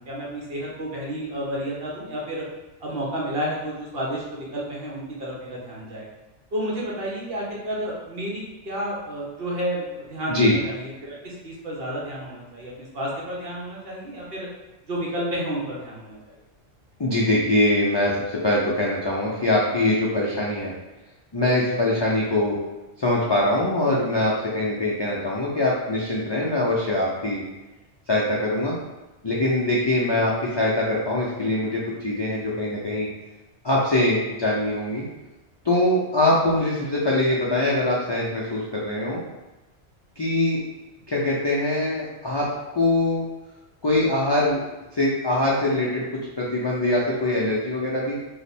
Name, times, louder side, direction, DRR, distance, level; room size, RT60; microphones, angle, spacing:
voice 1, 0.0-2.4 2.8-6.1 6.5-14.5 14.9-16.3, equal, 60° right, -4 dB, 1.1 m, -31 dB
voice 2, 17.0-20.7 21.3-22.6 23.0-27.4 28.1-28.8 29.2-33.1 33.6-35.0 35.6-39.2 40.2-40.6 41.1-43.2 43.8-44.6 44.9-46.0 46.4-48.1, left 1 dB, 45° left, -5 dB, 0.3 m, -23 dB
3.1 x 2.1 x 4.2 m, 1.1 s
omnidirectional pair, 1.2 m